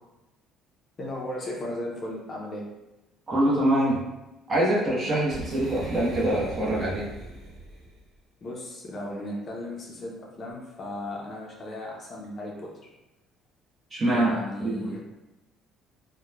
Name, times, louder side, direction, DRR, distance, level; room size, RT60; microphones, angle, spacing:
voice 1, 1.0-2.6 8.4-12.7 14.1-15.0, left 1 dB, 35° left, -2 dB, 0.5 m, -36 dB
voice 2, 3.3-4.0 4.5-7.0 13.9-14.9, right 1 dB, 30° right, -5 dB, 0.8 m, -24 dB
Boom, 5.3-8.0, right 1 dB, 60° right, 0.9 m, -39 dB
2.9 x 2.1 x 2.3 m, 0.99 s
cardioid pair, 130°, 0 cm